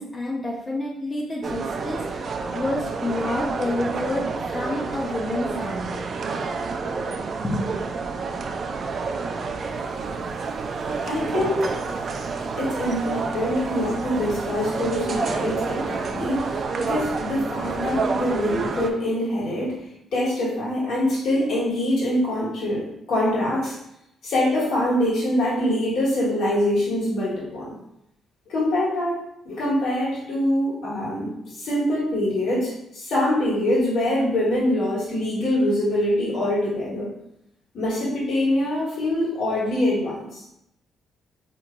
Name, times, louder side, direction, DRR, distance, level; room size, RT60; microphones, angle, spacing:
voice 1, 0.0-6.0 7.4-7.6, left 2 dB, 25° left, -4 dB, 0.6 m, -29 dB
sound 1, 1.4-18.9, right 4 dB, 50° right, 0.3 m, -29 dB
voice 2, 11.0-12.3 12.6-19.8 20.1-23.7 24.2-27.7 28.5-29.2 29.4-37.1 37.7-40.4, left 1 dB, 70° left, -7 dB, 1.5 m, -24 dB
3.7 x 2.9 x 2.2 m, 0.81 s
cardioid pair, 90°, 0 cm